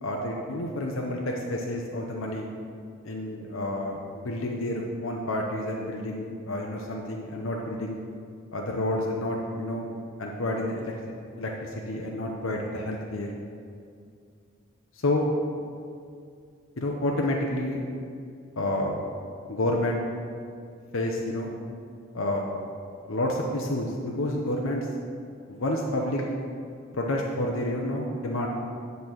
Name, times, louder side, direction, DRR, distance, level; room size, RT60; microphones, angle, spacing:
voice 1, 0.0-2.5 3.0-8.0 8.5-9.9 10.2-10.9 11.4-13.3 15.0-15.3 16.8-17.8 18.6-18.9 19.5-20.0 20.9-21.5 22.1-22.4 23.1-24.9 25.5-26.4 26.9-28.5, left 1 dB, 75° left, -1 dB, 0.7 m, -29 dB
8.7 x 4.0 x 6.2 m, 2.3 s
head